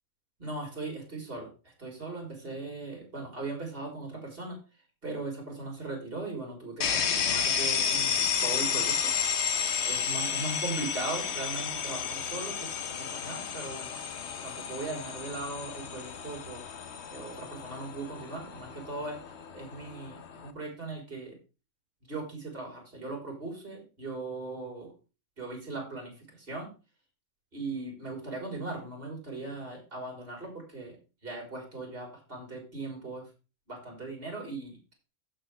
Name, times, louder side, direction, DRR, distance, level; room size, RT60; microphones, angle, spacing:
voice 1, 0.4-4.6 5.0-9.1 9.9-12.7 13.0-14.0 14.4-16.6 17.1-19.2 19.5-21.4 22.1-24.9 25.4-26.7 27.5-31.0 31.2-33.2 33.7-34.8, right 3 dB, 40° right, 0 dB, 4.4 m, -39 dB
sound 1, 6.8-20.5, left 7 dB, 55° left, 1.1 m, -32 dB
15.5 x 5.8 x 3.4 m, 0.32 s
omnidirectional pair, 1.5 m